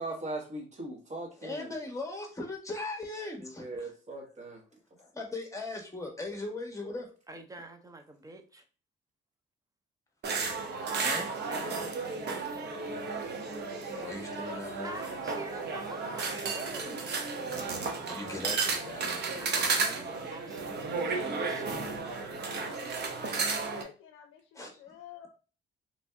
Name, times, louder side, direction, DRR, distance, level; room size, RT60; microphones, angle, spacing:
voice 1, 0.0-1.7 3.4-4.6, right 2 dB, 35° right, 0 dB, 1.4 m, -39 dB
voice 2, 1.4-3.9 5.0-7.1 10.9-11.3 13.9-15.0 17.9-20.3 22.7-22.9 24.5-24.8, left 2 dB, 15° left, 2 dB, 1.2 m, -40 dB
voice 3, 7.3-8.6 10.9-11.2 11.5-12.6 14.8-17.2 19.4-22.1, right 2 dB, 15° right, 6 dB, 0.6 m, -46 dB
sound 1, 10.2-23.8, right 4 dB, 60° right, 0.8 m, -33 dB
voice 4, 13.9-15.3 18.5-19.5 23.4-25.3, left 9 dB, 85° left, 6 dB, 0.5 m, -50 dB
3.1 x 2.6 x 3.4 m, 0.36 s
cardioid pair, 90°, 20 cm